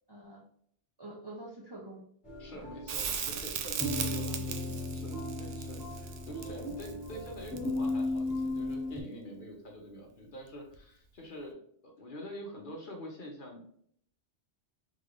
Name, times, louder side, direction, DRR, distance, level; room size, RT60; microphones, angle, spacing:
voice 1, 0.1-0.5 1.0-2.0 2.5-2.7 3.9-4.8 6.9-7.0, right 1 dB, 35° right, -2 dB, 0.4 m, -47 dB
sound 1, 2.2-9.0, left 2 dB, 25° left, 1.5 m, -36 dB
voice 2, 2.4-11.6 11.8-13.7, equal, 50° left, 1 dB, 0.9 m, -46 dB
Crackle, 2.9-8.0 10.7-10.8, right 7 dB, 85° right, 0.9 m, -37 dB
3.7 x 3.3 x 2.5 m, 0.64 s
omnidirectional pair, 1.2 m